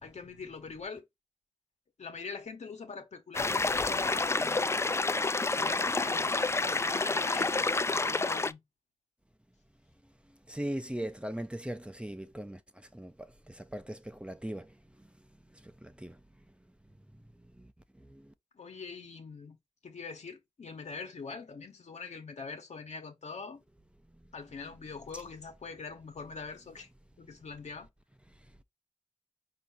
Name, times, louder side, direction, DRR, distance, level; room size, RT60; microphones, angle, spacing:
voice 1, 0.0-1.0 2.0-4.6 5.5-7.5 7.9-8.6 18.5-19.6 19.8-23.6 24.3-26.9 27.2-27.9, left 4 dB, 75° left, 1.3 m, -43 dB
sound 1, 3.3-8.5, left 3 dB, 25° left, 0.3 m, -29 dB
voice 2, 10.5-15.1 15.5-16.2 17.6-17.7 18.0-18.3 25.1-25.2, right 1 dB, 10° right, 0.7 m, -40 dB
4.6 x 2.9 x 4.0 m
cardioid pair, 45°, 12 cm